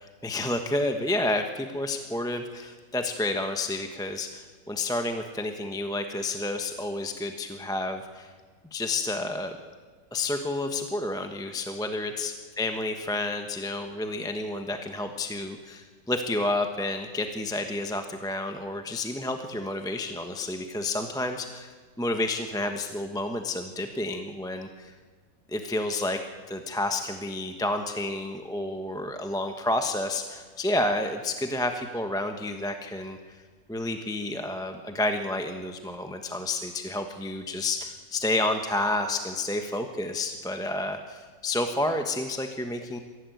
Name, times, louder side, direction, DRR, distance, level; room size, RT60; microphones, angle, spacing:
voice 1, 0.2-8.3 8.7-9.6 10.1-21.7 22.0-24.9 25.5-26.2 26.5-33.4 33.7-43.0, left 2 dB, 5° left, 5 dB, 0.9 m, -30 dB
23.0 x 16.0 x 9.3 m, 1.5 s
omnidirectional pair, 2.0 m